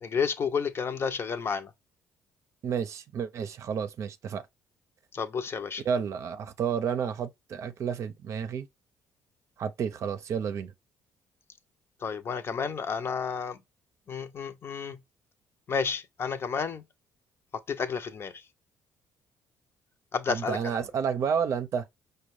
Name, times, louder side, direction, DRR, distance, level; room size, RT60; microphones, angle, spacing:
voice 1, 0.0-1.7 5.1-5.8 12.0-13.6 14.1-15.0 15.7-16.8 17.7-18.4 20.1-20.8, left 6 dB, 45° left, 0.6 m, -31 dB
voice 2, 2.6-4.4 5.8-8.7 9.6-10.7 20.3-21.9, right 7 dB, 60° right, 0.6 m, -30 dB
5.2 x 2.2 x 3.1 m
supercardioid pair, 60°, 6 cm